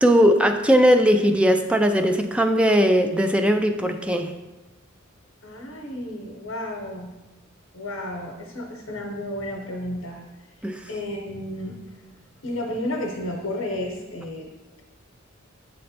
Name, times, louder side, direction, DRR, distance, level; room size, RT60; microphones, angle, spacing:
voice 1, 0.0-4.3 10.6-10.8, equal, 5° right, 6 dB, 0.4 m, -19 dB
voice 2, 5.4-7.1 7.7-10.2 10.9-11.8 12.4-14.5, left 1 dB, 80° left, 0 dB, 0.9 m, -32 dB
7.6 x 3.2 x 4.2 m, 1.1 s
head